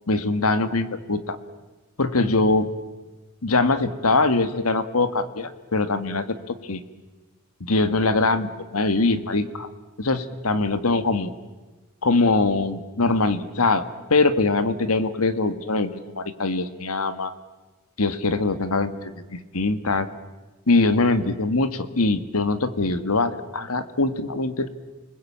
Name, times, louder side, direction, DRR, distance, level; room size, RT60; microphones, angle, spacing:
voice 1, 0.1-1.4 2.0-2.7 3.4-6.8 7.6-9.7 10.0-11.3 12.0-13.8 14.1-17.3 18.0-20.1 20.7-24.7, left 3 dB, 80° left, 12 dB, 1.6 m, -22 dB
29.5 x 20.5 x 8.7 m, 1.2 s
head